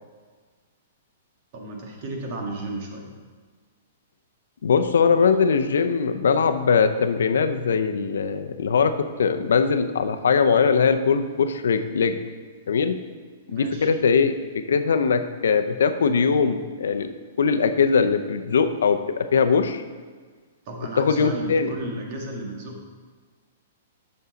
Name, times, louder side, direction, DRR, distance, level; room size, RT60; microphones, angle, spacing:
voice 1, 1.5-3.1 13.5-13.9 20.6-22.9, right 1 dB, 45° right, 0 dB, 1.6 m, -33 dB
voice 2, 4.6-12.2 12.7-13.0 13.5-14.3 14.7-17.1 17.4-19.8 21.0-21.7, left 5 dB, 90° left, 9 dB, 0.6 m, -21 dB
8.1 x 6.3 x 4.0 m, 1.5 s
hypercardioid pair, 160°, 0 cm